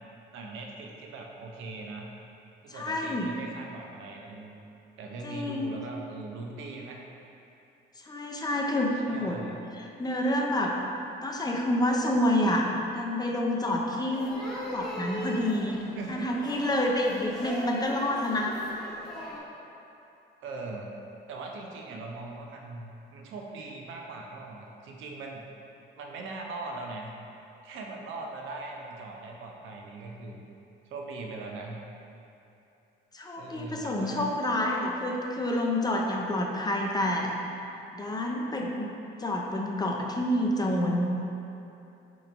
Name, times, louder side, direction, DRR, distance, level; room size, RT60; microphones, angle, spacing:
voice 1, 0.3-2.1 2.6-4.7 5.0-7.0 9.1-9.6 16.0-16.7 20.4-20.9 21.3-25.4 26.0-27.2 27.6-30.4 30.9-31.8 33.4-34.3, right 3 dB, 80° right, 0 dB, 0.6 m, -40 dB
voice 2, 2.7-3.3 5.2-5.8 8.0-9.4 9.8-10.8 11.2-14.3 14.7-15.8 16.1-18.7 33.1-37.4 37.9-38.9 39.2-41.1, left 1 dB, 20° left, -1 dB, 0.5 m, -28 dB
sound 1, 14.1-19.4, equal, ahead, 1.0 m, -39 dB
4.8 x 3.0 x 3.4 m, 2.8 s
cardioid pair, 90°, 20 cm